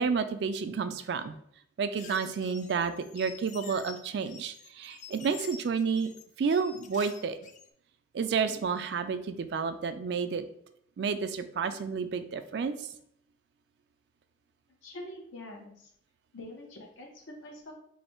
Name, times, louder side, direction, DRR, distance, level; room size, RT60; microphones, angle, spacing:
voice 1, 0.0-1.4 1.8-6.1 6.4-7.4 8.1-10.4 11.0-12.9, right 5 dB, 60° right, 10 dB, 0.3 m, -30 dB
sound 1, 2.0-7.7, left 7 dB, 40° left, 0.3 m, -48 dB
voice 2, 14.8-15.9 16.3-17.7, left 1 dB, 90° left, 0 dB, 0.8 m, -45 dB
3.1 x 2.6 x 4.3 m, 0.70 s
head